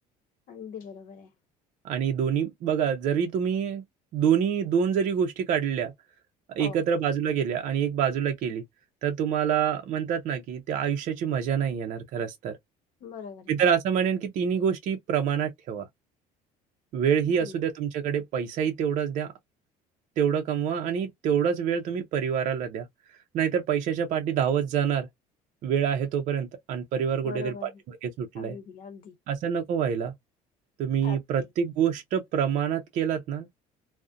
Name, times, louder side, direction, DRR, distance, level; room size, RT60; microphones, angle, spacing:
voice 1, 0.5-1.3 6.6-6.8 13.0-13.5 17.3-17.5 27.2-27.8 28.4-29.1 31.0-31.5, left 6 dB, 65° left, 0.8 m, -41 dB
voice 2, 1.8-3.8 4.1-5.9 6.5-8.6 9.0-12.6 13.5-15.9 16.9-19.3 20.2-22.9 23.3-25.1 25.6-28.6 29.3-30.1 30.8-33.5, right 8 dB, 55° right, 0.5 m, -26 dB
2.4 x 2.0 x 2.4 m
cardioid pair, 130°, 15 cm